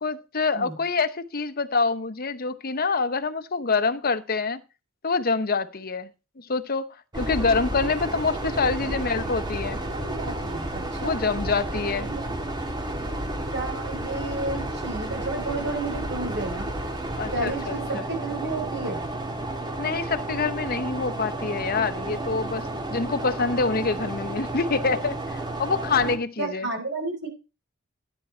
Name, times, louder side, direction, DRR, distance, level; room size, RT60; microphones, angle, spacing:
voice 1, 0.0-4.6 5.0-6.1 6.4-6.9 7.1-9.8 11.0-12.1 17.2-18.0 19.8-26.7, left 4 dB, 45° left, 0.9 m, -26 dB
sound 1, 7.1-26.2, right 1 dB, 20° right, 1.8 m, -31 dB
voice 2, 8.8-9.3 9.8-11.2 12.0-12.2 13.5-16.7 17.3-19.0 26.0-27.3, right 2 dB, 55° right, 5.1 m, -32 dB
13.5 x 9.8 x 4.4 m
head